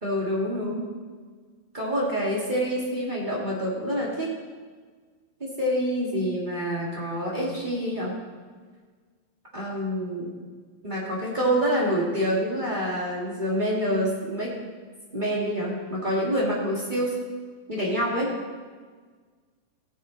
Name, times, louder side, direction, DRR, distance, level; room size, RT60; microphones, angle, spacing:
voice 1, 0.0-0.8 1.7-4.3 5.4-8.2 9.5-10.3 10.8-14.5 15.1-17.2 17.7-18.3, equal, 20° right, -5 dB, 1.4 m, -27 dB
16.5 x 8.4 x 4.0 m, 1.5 s
omnidirectional pair, 4.3 m